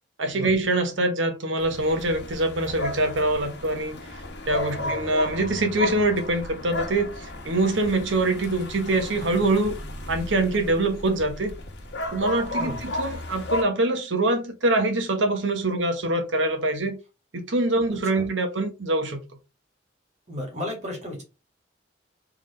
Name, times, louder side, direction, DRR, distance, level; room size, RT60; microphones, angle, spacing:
voice 1, 0.2-4.2 4.5-9.8 10.1-11.5 12.1-17.0 17.3-19.2, right 2 dB, 80° right, 1.1 m, -24 dB
sound 1, 1.6-13.6, left 1 dB, 65° left, 1.2 m, -34 dB
voice 2, 12.5-12.8 18.1-18.2 20.3-21.2, left 1 dB, 35° right, 2.0 m, -34 dB
3.7 x 3.5 x 3.2 m
head